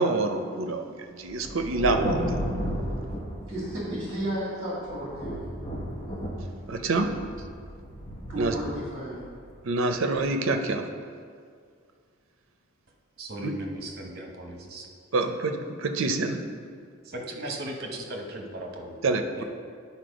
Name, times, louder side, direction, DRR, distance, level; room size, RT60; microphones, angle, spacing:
voice 1, 0.0-2.4 6.7-7.1 8.4-8.5 9.6-10.8 13.4-13.5 15.1-16.4 19.0-19.4, right 3 dB, 75° right, 6 dB, 0.6 m, -26 dB
Thunder, 1.3-4.4 4.9-10.2, equal, 35° left, 1.0 m, -33 dB
voice 2, 3.5-5.6 8.3-9.2, right 1 dB, 25° right, -7 dB, 2.2 m, -33 dB
voice 3, 13.2-14.9 17.1-19.4, right 1 dB, 50° right, 1 dB, 1.0 m, -37 dB
9.5 x 4.2 x 5.1 m, 2.1 s
head